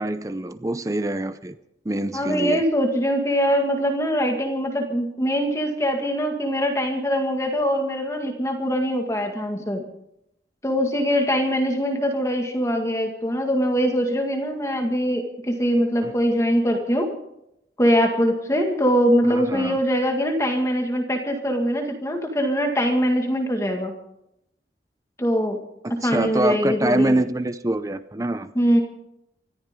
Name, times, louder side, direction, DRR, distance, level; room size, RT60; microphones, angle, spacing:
voice 1, 0.0-1.5 1.8-2.6 16.0-16.1 19.3-19.8 25.8-28.5, right 1 dB, 20° right, 11 dB, 0.6 m, -25 dB
voice 2, 2.1-9.8 10.6-17.1 17.8-23.9 25.2-25.6 26.0-27.1 28.6-28.8, equal, 15° left, 3 dB, 1.9 m, -22 dB
24.5 x 14.0 x 3.7 m, 0.80 s
head